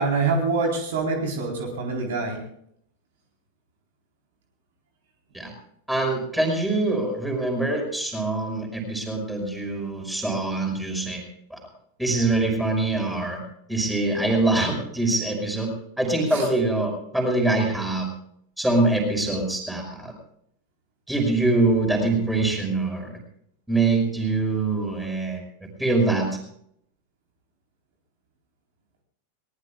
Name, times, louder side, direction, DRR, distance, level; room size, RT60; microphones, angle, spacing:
voice 1, 0.0-2.4 16.3-16.5, right 4 dB, 55° right, 1 dB, 4.1 m, -25 dB
voice 2, 5.9-11.2 11.5-11.6 12.0-13.4 13.7-18.1 18.6-20.1 21.1-23.1 23.7-25.4 25.8-26.4, right 2 dB, ahead, 2 dB, 5.5 m, -24 dB
23.0 x 19.5 x 2.4 m, 0.68 s
figure-of-eight pair, 90°, 0 cm